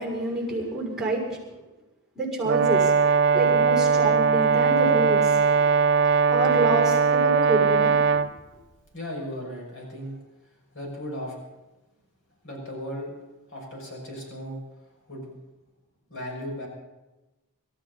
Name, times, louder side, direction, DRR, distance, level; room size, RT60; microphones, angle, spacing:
voice 1, 0.0-1.4 2.1-3.0 3.3-5.4 6.3-8.3, right 2 dB, ahead, -1 dB, 6.0 m, -27 dB
Brass instrument, 2.4-8.3, right 5 dB, 55° right, 0.6 m, -20 dB
voice 2, 8.9-10.2 10.7-11.4 12.4-13.1 13.5-14.6 15.1-15.3 16.1-16.7, equal, 60° left, -2 dB, 6.3 m, -36 dB
25.5 x 13.5 x 4.1 m, 1.1 s
head